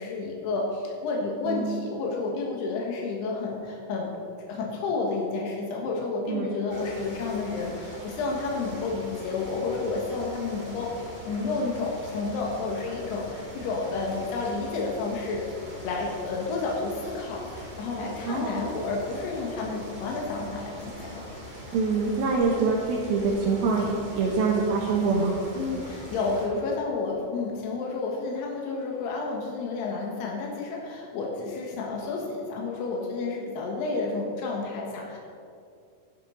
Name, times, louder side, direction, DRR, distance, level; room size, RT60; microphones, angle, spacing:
voice 1, 0.0-15.5 15.8-21.2 25.6-35.2, left 3 dB, 85° left, -1 dB, 3.5 m, -31 dB
voice 2, 1.4-1.8 6.3-6.5 10.6-10.8 18.3-18.7 21.7-25.3, right 4 dB, 70° right, -3 dB, 2.9 m, -25 dB
sound 1, 6.7-26.5, equal, 10° right, 2.8 m, -42 dB
11.5 x 11.5 x 5.2 m, 2.4 s
omnidirectional pair, 4.7 m